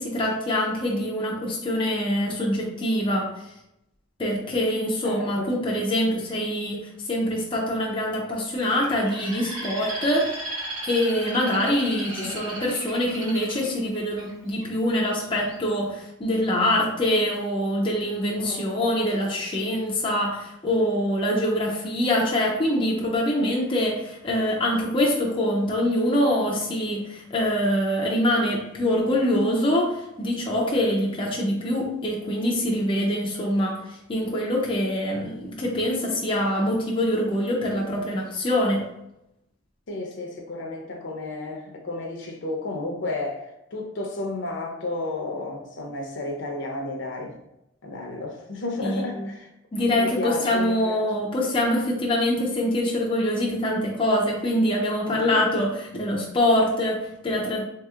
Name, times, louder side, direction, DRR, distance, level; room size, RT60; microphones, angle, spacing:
voice 1, 0.0-3.3 4.2-10.3 10.9-38.8 48.8-49.3 49.7-57.6, left 1 dB, 25° left, -3 dB, 0.5 m, -24 dB
voice 2, 5.0-5.5 12.2-12.4 18.3-18.6 39.9-47.3 47.8-49.5 49.9-51.1 55.1-55.4, left 2 dB, 60° left, 1 dB, 0.7 m, -32 dB
Bird, 8.6-14.6 15.2-15.6, right 1 dB, 75° right, 0.9 m, -36 dB
3.9 x 2.8 x 2.3 m, 0.86 s
head